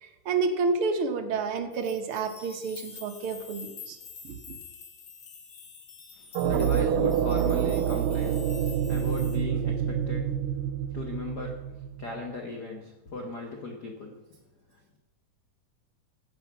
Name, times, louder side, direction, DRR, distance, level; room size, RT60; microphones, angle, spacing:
voice 1, 0.0-4.0 4.2-4.4, right 4 dB, 60° right, 5 dB, 1.5 m, -29 dB
sound 1, 1.7-9.4, left 6 dB, 40° left, 1.8 m, -47 dB
voice 2, 6.1-14.4 14.7-15.0, left 3 dB, 75° left, 2 dB, 0.9 m, -38 dB
sound 2, 6.4-12.2, right 9 dB, 85° right, 2.2 m, -27 dB
15.0 x 7.6 x 5.9 m, 1.0 s
omnidirectional pair, 3.8 m